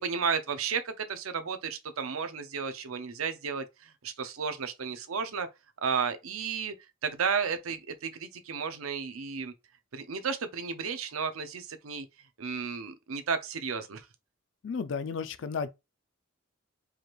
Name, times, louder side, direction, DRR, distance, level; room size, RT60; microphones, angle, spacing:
voice 1, 0.0-5.5 5.8-6.7 7.0-9.5 9.9-12.1 12.4-14.1, right 6 dB, 85° right, 0.6 m, -33 dB
voice 2, 14.6-15.7, left 5 dB, 60° left, 0.4 m, -33 dB
4.8 x 2.5 x 3.1 m
head